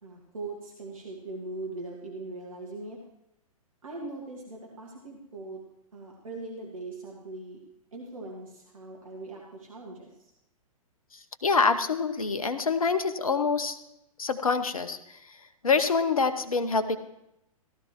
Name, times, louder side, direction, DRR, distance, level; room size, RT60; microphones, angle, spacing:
voice 1, 0.0-3.0 3.8-5.6 5.9-7.6 7.9-10.3, right 2 dB, 65° right, -1 dB, 1.8 m, -40 dB
voice 2, 11.1-13.8 14.2-17.0, left 4 dB, 70° left, 12 dB, 0.8 m, -26 dB
15.5 x 12.0 x 3.0 m, 0.85 s
figure-of-eight pair, 110°, 19 cm